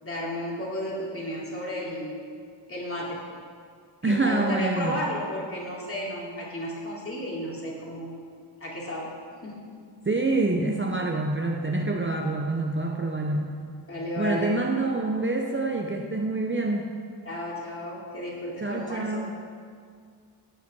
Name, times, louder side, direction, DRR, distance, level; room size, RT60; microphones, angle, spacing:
voice 1, 0.0-2.2 2.7-3.2 4.0-8.1 8.6-9.1 9.4-9.6 13.9-14.6 17.2-19.2, equal, 30° left, -5 dB, 2.9 m, -33 dB
voice 2, 4.0-5.0 10.1-13.6 14.2-16.9 18.6-19.3, right 2 dB, 25° right, 0 dB, 0.7 m, -26 dB
16.5 x 5.8 x 6.0 m, 2.1 s
wide cardioid pair, 125°, 46 cm